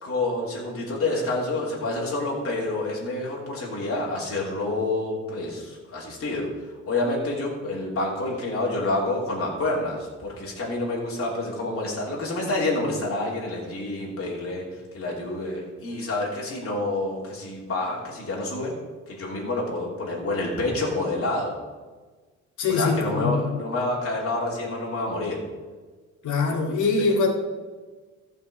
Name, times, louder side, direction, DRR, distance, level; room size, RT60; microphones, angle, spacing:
voice 1, 0.0-18.7 19.1-21.5 22.7-25.4 27.0-27.1, left 2 dB, 45° left, -4 dB, 3.0 m, -28 dB
voice 2, 22.6-23.5 26.2-27.3, left 4 dB, 75° left, 1 dB, 2.1 m, -23 dB
15.0 x 5.4 x 5.0 m, 1.4 s
cardioid pair, 90°, 30 cm